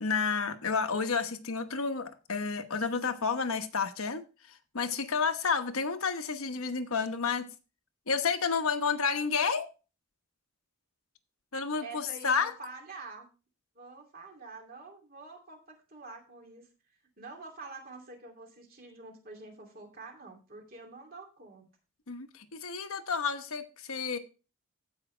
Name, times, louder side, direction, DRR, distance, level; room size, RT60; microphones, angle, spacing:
voice 1, 0.0-4.2 4.7-7.4 8.1-9.7 11.5-12.5 22.1-24.2, left 5 dB, 75° left, 1.1 m, -30 dB
voice 2, 11.8-13.3 13.7-16.7 17.2-21.7, right 3 dB, 40° right, 2.7 m, -47 dB
15.5 x 5.6 x 3.3 m
head